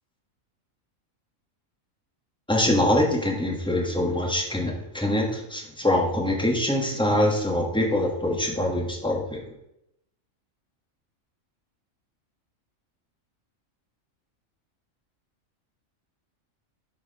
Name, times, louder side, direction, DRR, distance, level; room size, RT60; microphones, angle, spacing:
voice 1, 2.5-9.4, left 1 dB, 5° left, 0 dB, 1.5 m, -24 dB
11.0 x 5.0 x 4.9 m, 0.81 s
omnidirectional pair, 1.4 m